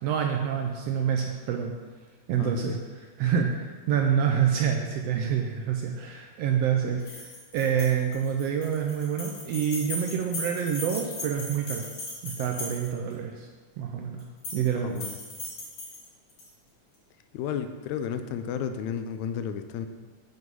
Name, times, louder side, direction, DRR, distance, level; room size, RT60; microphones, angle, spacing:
voice 1, 0.0-1.7 2.3-2.8 3.2-3.5 3.9-11.9 12.2-13.5 13.8-14.2 14.5-15.0, right 8 dB, 80° right, 2 dB, 1.5 m, -27 dB
voice 2, 2.4-2.8 3.2-3.4 14.7-15.2 17.3-19.9, left 8 dB, 85° left, 9 dB, 1.9 m, -33 dB
sound 1, 7.0-13.1 14.2-14.7 15.0-16.5, left 2 dB, 60° left, 3.3 m, -38 dB
7.4 x 6.1 x 5.4 m, 1.4 s
omnidirectional pair, 3.3 m